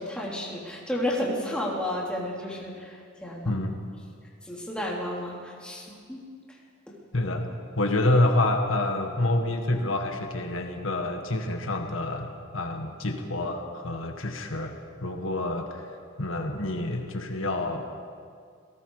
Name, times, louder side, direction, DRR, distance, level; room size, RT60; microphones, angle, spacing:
voice 1, 0.0-3.5 4.4-6.2, left 1 dB, 5° left, -3 dB, 3.4 m, -32 dB
voice 2, 3.4-3.8 7.1-7.5 7.8-14.8 15.0-15.9 16.2-17.8, left 2 dB, 80° left, 4 dB, 1.8 m, -27 dB
29.0 x 18.0 x 5.0 m, 2.2 s
head